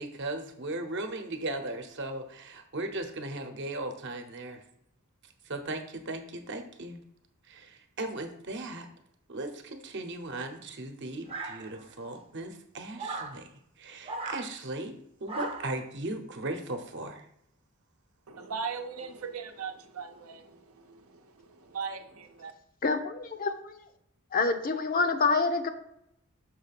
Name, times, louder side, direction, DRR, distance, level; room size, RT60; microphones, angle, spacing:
voice 1, 0.0-4.6 5.4-7.0 7.5-8.9 9.3-13.5 13.8-14.9 15.2-17.3, right 2 dB, 55° right, 6 dB, 0.9 m, -37 dB
sound 1, 11.3-12.0 13.0-13.4 14.0-14.5 15.3-15.8, right 3 dB, 25° right, 0.7 m, -38 dB
voice 2, 18.3-22.5, right 5 dB, 80° right, 6 dB, 0.8 m, -39 dB
voice 3, 22.8-23.8 24.3-25.7, left 4 dB, 40° left, 8 dB, 0.6 m, -27 dB
6.4 x 3.3 x 5.9 m, 0.75 s
head